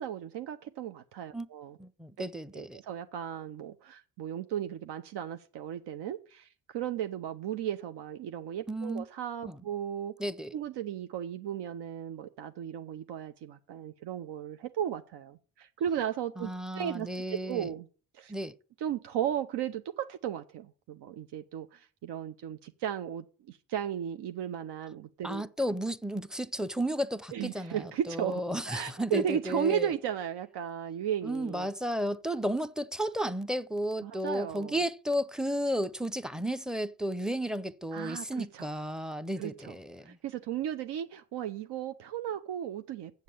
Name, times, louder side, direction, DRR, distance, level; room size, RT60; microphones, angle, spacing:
voice 1, 0.0-1.8 2.5-10.1 10.5-17.9 18.1-18.3 18.8-25.4 27.3-31.7 34.0-34.8 37.9-38.7 39.4-39.7 40.0-43.2, right 9 dB, 75° right, 0.8 m, -35 dB
voice 2, 1.8-2.8 8.7-9.1 9.5-9.6 10.2-10.5 16.4-17.7 18.3-18.6 25.2-29.9 31.2-40.2, equal, ahead, 0.6 m, -33 dB
7.8 x 7.4 x 8.5 m
cardioid pair, 90°, 41 cm